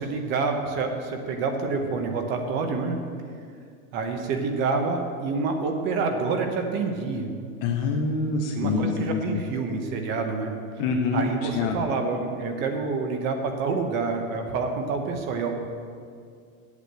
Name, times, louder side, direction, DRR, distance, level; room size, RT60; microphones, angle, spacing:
voice 1, 0.0-3.0 3.9-7.3 8.5-10.5 11.1-15.5, right 4 dB, 25° right, 5 dB, 0.8 m, -27 dB
voice 2, 7.6-9.2 10.8-11.3 11.5-11.8, left 4 dB, 25° left, 2 dB, 0.5 m, -25 dB
8.4 x 8.3 x 7.6 m, 2.2 s
supercardioid pair, 170°, 41 cm